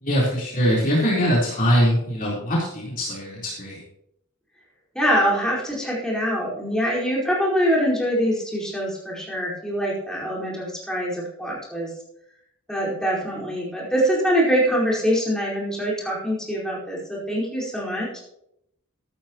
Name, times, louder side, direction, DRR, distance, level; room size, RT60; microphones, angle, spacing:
voice 1, 0.0-3.8, equal, 40° left, -6 dB, 4.0 m, -22 dB
voice 2, 4.9-11.9 12.7-18.2, equal, 5° left, -5 dB, 4.7 m, -24 dB
14.5 x 13.0 x 3.0 m, 0.76 s
head